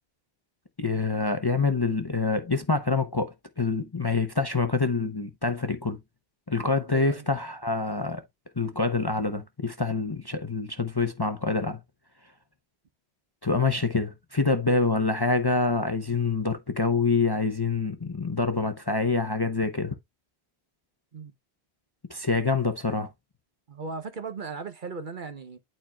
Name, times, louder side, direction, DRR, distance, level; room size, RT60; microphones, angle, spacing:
voice 1, 0.8-6.0 6.5-8.2 8.6-11.8 13.4-19.9 22.1-23.1, left 3 dB, 25° left, 0.7 m, -26 dB
voice 2, 6.9-7.3 21.1-21.3 23.7-25.6, right 4 dB, 50° right, 1.0 m, -37 dB
11.5 x 4.4 x 2.3 m
omnidirectional pair, 1.1 m